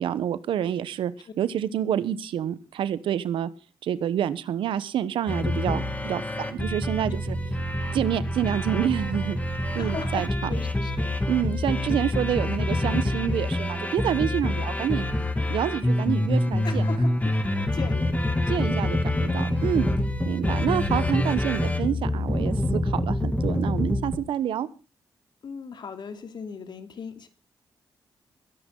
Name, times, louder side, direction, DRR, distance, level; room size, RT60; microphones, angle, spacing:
voice 1, 0.0-3.5 3.8-7.4 7.9-9.4 9.7-10.5 11.3-15.0 15.5-16.9 18.5-19.9 20.2-24.7, right 10 dB, 85° right, 16 dB, 1.0 m, -28 dB
sound 1, 5.3-24.2, left 1 dB, 15° left, 2.5 m, -26 dB
voice 2, 9.8-10.9 16.6-17.1 17.7-18.1 25.4-27.3, left 6 dB, 65° left, 6 dB, 2.7 m, -38 dB
21.5 x 10.5 x 3.9 m, 0.33 s
supercardioid pair, 55°, 8 cm